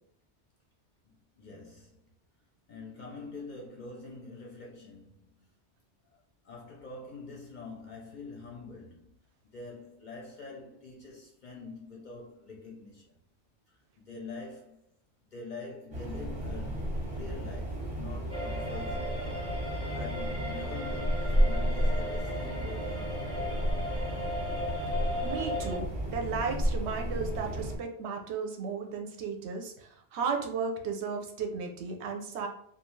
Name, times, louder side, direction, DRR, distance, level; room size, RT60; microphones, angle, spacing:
voice 1, 1.1-2.1 2.7-5.6 6.1-9.1 9.5-13.1 14.0-14.9 15.3-19.2 19.9-23.5, left 3 dB, 55° left, 0.5 m, -45 dB
sound 1, 15.9-27.8, equal, 35° right, 0.8 m, -32 dB
sound 2, 18.3-25.8, left 1 dB, 5° left, 0.7 m, -37 dB
voice 2, 24.9-32.5, right 5 dB, 75° right, 0.8 m, -35 dB
2.5 x 2.3 x 3.0 m
omnidirectional pair, 1.2 m